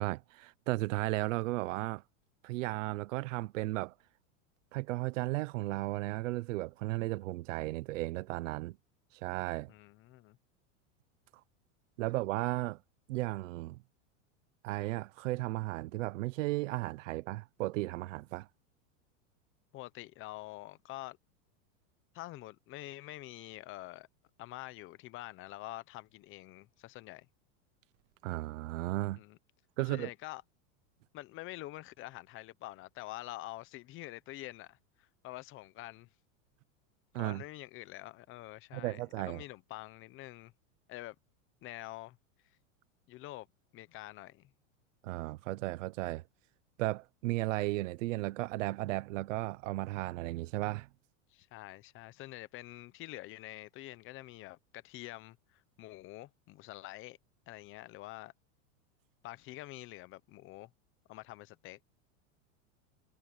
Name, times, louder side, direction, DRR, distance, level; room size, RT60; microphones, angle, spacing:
voice 1, 0.0-2.0 2.4-3.9 4.7-8.8 9.1-9.7 12.0-12.8 13.1-13.8 14.6-18.5 28.2-29.2 29.8-30.1 37.1-37.4 38.7-39.4 45.0-46.2 46.8-50.9, right 19 dB, 70° right, 1.0 m, -35 dB
voice 2, 9.7-10.4 19.7-21.2 22.1-24.1 24.4-27.3 29.2-29.4 29.8-30.4 31.1-36.1 37.2-40.5 40.9-41.1 41.6-42.2 43.1-43.5 43.7-44.5 51.3-57.2 57.5-58.3 59.2-60.7 61.1-61.8, left 17 dB, 30° left, 0.9 m, -46 dB
supercardioid pair, 150°, 39 cm